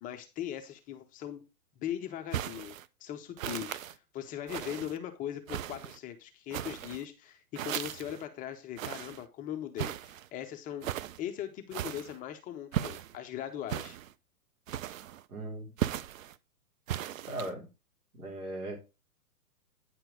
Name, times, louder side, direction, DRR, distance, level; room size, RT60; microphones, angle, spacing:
voice 1, 0.0-1.4 1.8-10.9 11.2-14.0, left 10 dB, 20° left, 0.6 m, -40 dB
sound 1, 2.3-2.9 3.4-3.9 4.5-5.0 5.5-6.0 6.5-7.0 7.6-8.2 8.8-9.2 9.8-10.3 10.8-11.2 11.7-12.2 12.7-13.2 13.7-14.1 14.7-15.2 15.8-16.3 16.9-17.5, right 11 dB, 60° right, 0.6 m, -37 dB
voice 2, 15.3-15.7 17.3-17.7 18.2-18.8, right 2 dB, 80° right, 3.8 m, -38 dB
9.1 x 4.5 x 4.9 m
hypercardioid pair, 120°, 44 cm